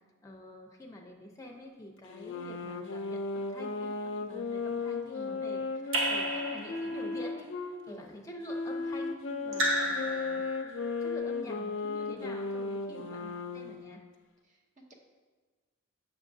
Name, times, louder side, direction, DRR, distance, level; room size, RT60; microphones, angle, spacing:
voice 1, 0.2-10.4 11.0-14.0, left 1 dB, 15° left, 0 dB, 0.6 m, -47 dB
sound 1, 2.1-7.8 8.4-13.8, left 3 dB, 65° left, 0.4 m, -35 dB
Raindrop / Drip, 5.9-7.2 9.5-10.9, right 1 dB, 70° right, 0.8 m, -32 dB
voice 2, 14.4-14.9, right 1 dB, 35° right, 0 dB, 0.8 m, -53 dB
7.3 x 5.9 x 2.6 m, 1.4 s
head